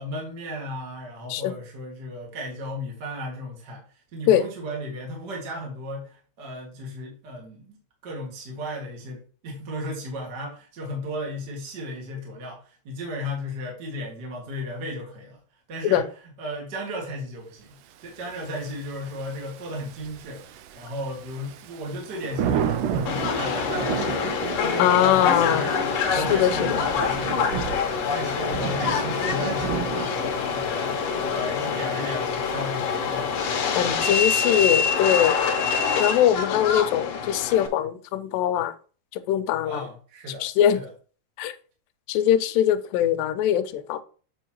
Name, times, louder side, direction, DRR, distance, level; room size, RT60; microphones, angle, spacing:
voice 1, 0.0-3.8 4.1-7.8 8.0-15.4 15.7-16.1 16.4-20.4 20.7-25.7 26.1-33.4 39.6-40.4 40.7-40.9, equal, 40° right, 1.9 m, -35 dB
Thunder / Rain, 18.0-34.6, right 9 dB, 80° right, 2.1 m, -34 dB
Subway metro underground, 23.1-37.7, left 6 dB, 65° left, 1.7 m, -26 dB
voice 2, 24.8-25.7 26.1-26.8 33.8-35.4 36.0-38.8 39.1-39.8 40.4-40.8 41.4-41.6 42.1-44.0, left 10 dB, 90° left, 2.3 m, -22 dB
8.3 x 5.5 x 2.9 m
omnidirectional pair, 3.9 m